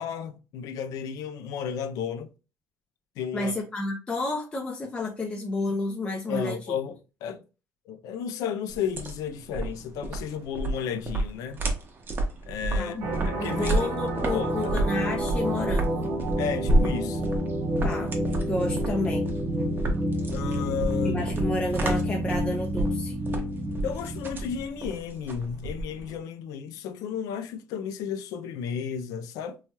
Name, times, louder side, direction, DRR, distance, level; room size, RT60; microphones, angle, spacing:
voice 1, 0.0-2.3 3.2-3.5 6.3-7.4 7.9-11.6 12.5-13.0 13.2-13.8 14.3-14.8 16.4-17.2 20.3-21.2 23.8-29.6, left 7 dB, 80° left, 0.4 m, -33 dB
voice 2, 3.3-6.6 12.8-16.1 17.8-18.1 18.5-19.3 21.0-23.1, left 2 dB, 15° left, 0.5 m, -31 dB
sound 1, 8.7-26.2, right 2 dB, 35° right, 0.7 m, -30 dB
sound 2, 13.0-24.8, equal, 65° right, 1.0 m, -29 dB
3.0 x 2.3 x 2.8 m
cardioid pair, 115°, 6 cm